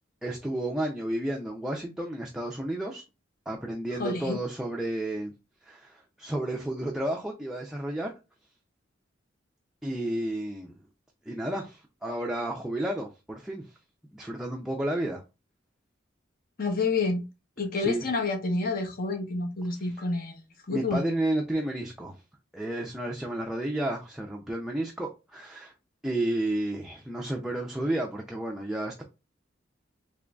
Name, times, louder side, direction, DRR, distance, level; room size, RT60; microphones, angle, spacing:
voice 1, 0.2-3.0 3.5-5.3 5.6-8.1 9.8-10.7 11.3-13.7 14.1-15.2 17.8-18.1 19.8-19.9 20.7-22.2 22.5-25.7 26.0-29.0, right 1 dB, 5° right, 0.4 m, -31 dB
voice 2, 4.0-4.4 16.6-17.2 17.6-21.1, left 3 dB, 50° left, 0.9 m, -29 dB
3.7 x 3.0 x 2.3 m
head